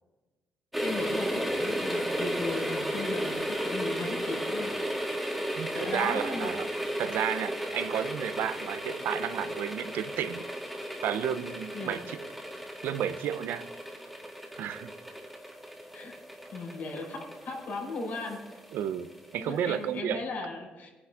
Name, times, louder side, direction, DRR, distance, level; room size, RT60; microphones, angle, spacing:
sound 1, 0.7-19.4 19.7-19.8, equal, ahead, 1.9 m, -34 dB
voice 1, 0.8-4.7 5.4-6.5 11.7-12.0 15.9-16.2 16.5-18.6 19.4-20.9, left 3 dB, 70° left, -1 dB, 4.8 m, -37 dB
voice 2, 5.5-6.7 7.0-10.4 11.0-12.3 12.8-13.7 14.6-14.9 18.7-19.1 19.3-20.2, right 9 dB, 85° right, 12 dB, 0.7 m, -32 dB
21.0 x 9.8 x 3.7 m, 1.2 s
cardioid pair, 105°, 3 cm